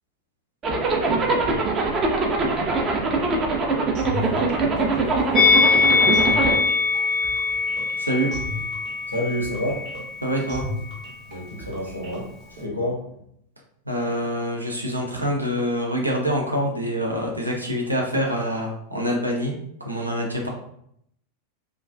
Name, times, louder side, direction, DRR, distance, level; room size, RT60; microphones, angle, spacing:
Zipper (clothing), 0.6-6.6, right 3 dB, 25° right, 0.4 m, -23 dB
sound 1, 3.9-12.6, left 1 dB, 45° right, 0.8 m, -36 dB
Musical instrument, 5.3-10.6 10.8-11.1, left 4 dB, 25° left, 0.5 m, -22 dB
voice 1, 8.0-8.3 10.2-10.6 13.9-19.5 19.8-20.5, equal, 85° right, -1 dB, 0.5 m, -25 dB
voice 2, 9.1-9.9 11.3-13.0, left 1 dB, 90° left, -2 dB, 0.6 m, -29 dB
2.3 x 2.2 x 2.4 m, 0.72 s
figure-of-eight pair, 90°, 0 cm